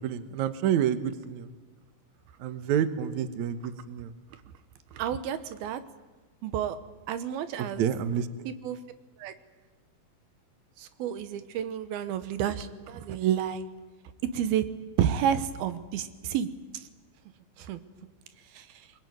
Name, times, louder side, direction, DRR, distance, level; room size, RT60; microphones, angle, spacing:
voice 1, 0.0-1.5 2.4-4.1 7.6-8.3, right 9 dB, 65° right, 11 dB, 2.1 m, -28 dB
voice 2, 4.9-5.8 6.4-6.8 7.1-7.9 8.5-8.8 9.2-9.3 10.8-13.6 14.3-14.6 15.0-16.5 16.7-16.8 17.6-17.8 18.5-18.7, right 9 dB, 80° right, 11 dB, 3.0 m, -30 dB
23.5 x 22.0 x 9.4 m, 1.3 s
omnidirectional pair, 4.3 m